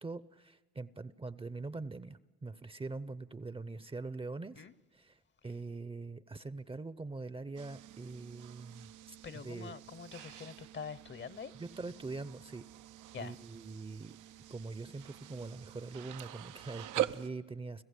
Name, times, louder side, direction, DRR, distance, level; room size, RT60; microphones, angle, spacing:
voice 1, 0.0-4.6 4.9-9.2 9.4-9.7 11.6-12.7 13.2-14.2 14.5-17.8, right 3 dB, 20° right, 0.6 m, -43 dB
sound 1, 7.6-17.3, right 13 dB, 80° right, 0.6 m, -44 dB
voice 2, 9.2-11.5 13.1-13.4, left 6 dB, 40° left, 0.8 m, -45 dB
30.0 x 15.0 x 8.3 m
cardioid pair, 90°, 30 cm